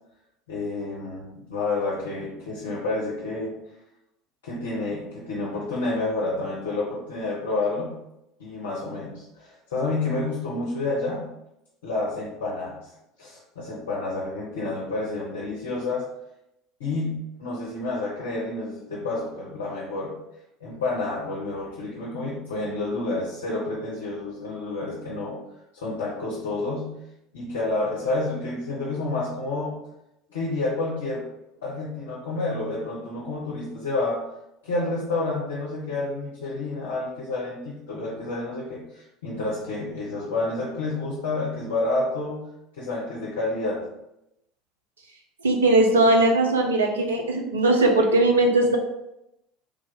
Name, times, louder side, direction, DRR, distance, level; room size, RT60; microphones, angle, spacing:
voice 1, 0.5-3.5 4.4-8.0 8.4-11.3 11.8-12.8 13.2-16.1 16.8-20.1 20.6-25.4 25.7-27.0 27.3-29.8 30.3-31.2 31.6-34.2 34.6-42.5 42.8-43.8, left 2 dB, 70° left, -6 dB, 0.8 m, -29 dB
voice 2, 45.4-48.8, right 2 dB, 75° right, 2 dB, 0.6 m, -19 dB
3.4 x 2.4 x 3.6 m, 0.85 s
figure-of-eight pair, 70°, 0 cm